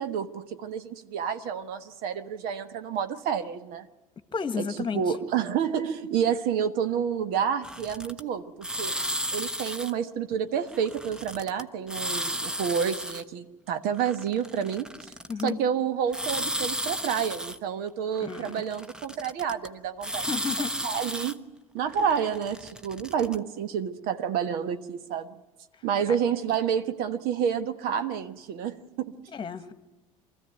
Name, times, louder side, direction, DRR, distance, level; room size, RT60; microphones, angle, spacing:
voice 1, 0.0-3.9 4.6-4.7 4.9-9.0 9.3-15.1 15.4-20.3 20.8-21.4 21.7-25.4 25.8-29.1, right 8 dB, 55° right, 10 dB, 1.3 m, -29 dB
voice 2, 4.3-5.1 15.3-15.6 18.2-18.6 20.2-20.7 29.3-29.8, left 5 dB, 25° left, 11 dB, 1.5 m, -32 dB
sound 1, 7.6-8.2 8.6-9.9 10.7-11.6 11.9-13.2 14.0-15.5 16.1-17.6 18.2-19.7 20.0-21.3 21.9-23.4, equal, 5° right, 0.9 m, -33 dB
24.5 x 14.5 x 9.2 m, 1.2 s
hypercardioid pair, 70°, 18 cm